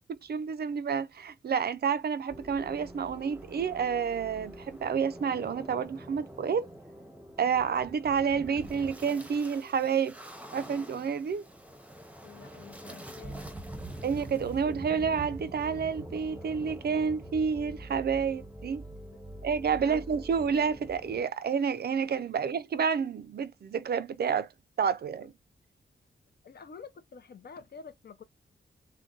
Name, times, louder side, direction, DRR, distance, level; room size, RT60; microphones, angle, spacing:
voice 1, 0.1-6.7 7.4-10.2 10.5-11.4 14.0-18.8 19.4-24.5 24.8-25.3, right 6 dB, 55° right, 0.4 m, -29 dB
sound 1, 2.3-21.2, right 1 dB, 5° right, 0.7 m, -45 dB
voice 2, 12.2-13.5 14.4-14.5 19.1-20.0 26.4-28.2, left 5 dB, 55° left, 0.6 m, -49 dB
2.6 x 2.2 x 3.7 m
wide cardioid pair, 95°, 19 cm